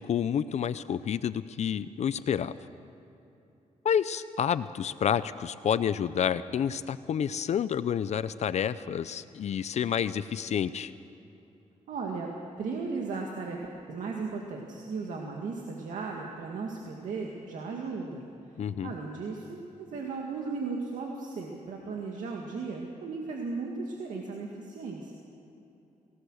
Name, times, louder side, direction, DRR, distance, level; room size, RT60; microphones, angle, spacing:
voice 1, 0.0-2.5 3.8-10.9 18.6-18.9, left 8 dB, 60° left, 14 dB, 0.6 m, -29 dB
voice 2, 11.9-12.3 12.6-13.6 13.9-18.2 18.8-25.1, right 4 dB, 80° right, 0 dB, 2.1 m, -36 dB
25.0 x 18.0 x 6.4 m, 2.9 s
cardioid pair, 115°, 13 cm